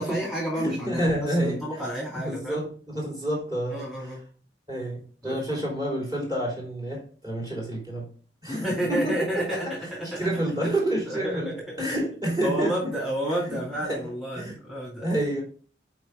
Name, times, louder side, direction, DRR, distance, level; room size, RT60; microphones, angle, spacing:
voice 1, 0.0-2.6 3.7-4.2 5.2-5.6 8.5-10.3 10.6-10.7 11.1-11.8 12.4-15.1, equal, ahead, -6 dB, 2.5 m, -30 dB
voice 2, 0.6-1.6 2.2-3.8 4.7-8.1 8.4-9.1 9.5-9.7 10.2-12.9 13.5-13.6 13.9-14.1 14.3-14.6 15.0-15.4, right 1 dB, 20° right, -1 dB, 3.3 m, -29 dB
6.8 x 4.7 x 3.7 m, 0.41 s
head